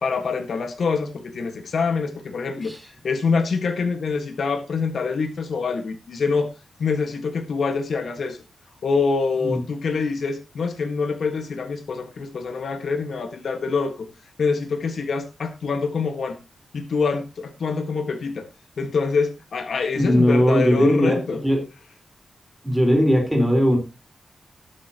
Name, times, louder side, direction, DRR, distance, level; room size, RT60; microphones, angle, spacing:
voice 1, 0.0-2.7 3.0-6.5 6.8-8.4 8.8-14.1 14.4-16.4 16.7-18.5 18.8-21.4, left 4 dB, 65° left, 7 dB, 1.5 m, -25 dB
voice 2, 19.9-21.2 21.4-21.6 22.6-23.8, equal, 5° right, 2 dB, 4.4 m, -18 dB
19.0 x 7.8 x 2.9 m, 0.27 s
wide cardioid pair, 140°, 0 cm